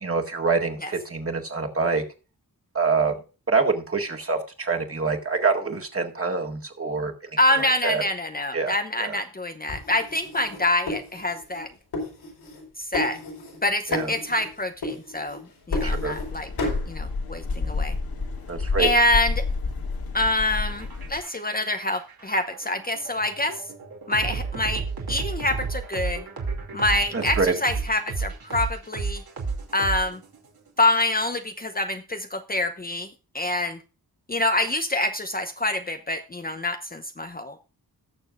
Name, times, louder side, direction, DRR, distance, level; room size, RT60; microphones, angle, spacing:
voice 1, 0.0-2.0 2.7-3.1 3.5-7.3 7.6-8.0 8.5-9.2 13.9-14.1 15.8-16.2 18.5-18.9 27.1-27.5, right 4 dB, 35° right, 2 dB, 1.9 m, -25 dB
voice 2, 7.4-11.7 12.9-13.2 13.6-15.4 15.7-16.5 16.9-18.0 18.8-19.4 20.1-23.6 24.1-26.2 26.7-29.2 29.7-30.2 30.8-33.1 33.3-33.8 34.3-37.6, left 1 dB, 25° left, 7 dB, 0.7 m, -26 dB
sound 1, 9.7-11.6 11.9-12.7 12.9-13.6 13.9-14.5 14.8-16.3 16.6-16.9, left 2 dB, 90° left, 4.6 m, -33 dB
sound 2, 15.7-21.2, left 3 dB, 65° left, 2.1 m, -29 dB
sound 3, 20.7-30.5, right 4 dB, 70° right, 2.7 m, -32 dB
18.5 x 6.8 x 2.5 m, 0.33 s
wide cardioid pair, 110°, 38 cm